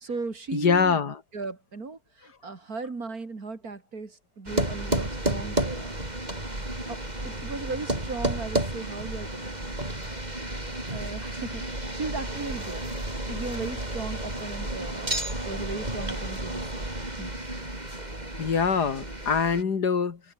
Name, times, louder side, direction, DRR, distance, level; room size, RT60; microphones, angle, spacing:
voice 1, 0.0-1.0 1.3-6.0 6.9-7.0 7.2-9.5 10.9-11.6 11.9-12.8 13.2-16.9 17.2-17.3, right 4 dB, 60° right, 3.5 m, -36 dB
voice 2, 0.5-1.2 18.4-20.2, left 6 dB, 70° left, 2.6 m, -24 dB
sound 1, 4.5-19.6, right 1 dB, 25° right, 5.6 m, -32 dB
omnidirectional pair, 1.8 m